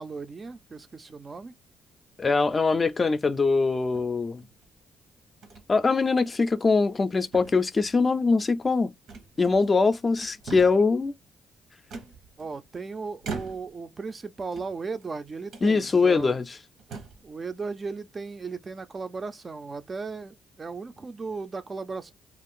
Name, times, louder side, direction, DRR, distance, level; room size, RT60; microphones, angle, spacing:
voice 1, 0.0-1.5 12.4-16.4 17.2-22.1, right 4 dB, 35° right, 0.4 m, -36 dB
voice 2, 2.2-4.4 5.7-8.9 9.4-11.1 15.6-16.6, left 4 dB, 30° left, 0.4 m, -22 dB
sound 1, 2.8-3.1 3.9-4.7 5.4-5.7 6.1-6.2 6.7-7.1 7.3-8.0 9.1-9.8 10.1-10.9 11.9-12.7 13.2-13.9 14.4-15.1 15.5-15.7 16.3-16.4 16.8-17.3, right 4 dB, 75° right, 0.9 m, -42 dB
2.4 x 2.4 x 3.6 m
cardioid pair, 90°, 0 cm